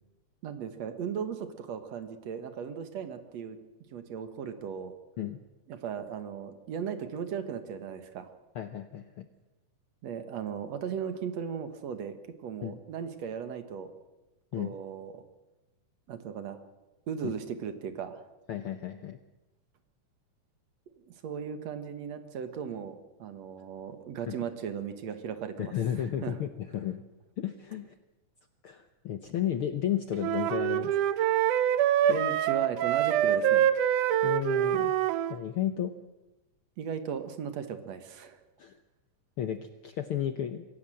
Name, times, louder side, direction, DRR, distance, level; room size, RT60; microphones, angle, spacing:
voice 1, 0.4-3.6 3.9-4.9 5.7-8.3 10.0-13.9 14.5-15.2 16.1-16.6 17.1-18.2 21.0-26.4 32.1-33.7 36.8-38.4, right 7 dB, 65° right, 10 dB, 2.5 m, -37 dB
voice 2, 8.5-9.3 12.6-12.8 14.5-14.7 17.2-17.3 18.5-19.2 24.3-24.4 25.6-27.0 27.4-27.9 28.6-30.9 34.2-34.9 35.3-35.9 38.6-38.8 39.4-40.7, left 10 dB, 70° left, 10 dB, 1.3 m, -33 dB
sound 1, 30.2-35.4, right 10 dB, 85° right, 2.4 m, -25 dB
24.5 x 16.5 x 7.7 m, 1.0 s
omnidirectional pair, 3.5 m